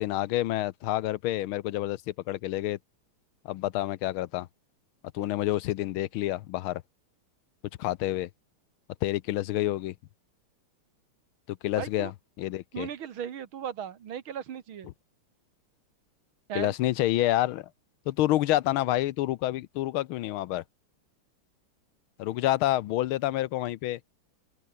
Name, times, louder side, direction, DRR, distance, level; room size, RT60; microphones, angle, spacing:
voice 1, 0.0-2.8 3.4-4.5 5.1-6.8 7.8-8.3 9.0-9.9 11.5-12.1 12.4-12.9 16.5-17.7 18.1-20.6 22.2-24.0, left 15 dB, 75° left, 1.5 m, -28 dB
voice 2, 11.8-12.1 12.7-14.9 16.5-16.7, right 9 dB, 70° right, 2.2 m, -37 dB
omnidirectional pair, 2.4 m